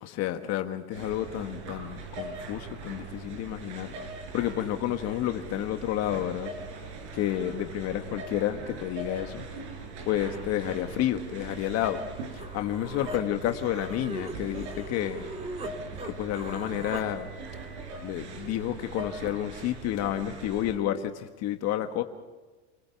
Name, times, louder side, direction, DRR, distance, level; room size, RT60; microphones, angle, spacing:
voice 1, 0.0-3.9 4.3-6.5 7.1-9.4 10.1-12.0 12.5-15.3 16.2-17.3 18.0-22.0, left 12 dB, 50° left, 7 dB, 1.5 m, -30 dB
sound 1, 0.9-20.8, right 3 dB, 85° right, 5.9 m, -41 dB
Human voice, 12.4-15.7 16.0-17.1, right 2 dB, 20° right, 3.0 m, -40 dB
28.5 x 16.5 x 7.2 m, 1.3 s
supercardioid pair, 120°, 34 cm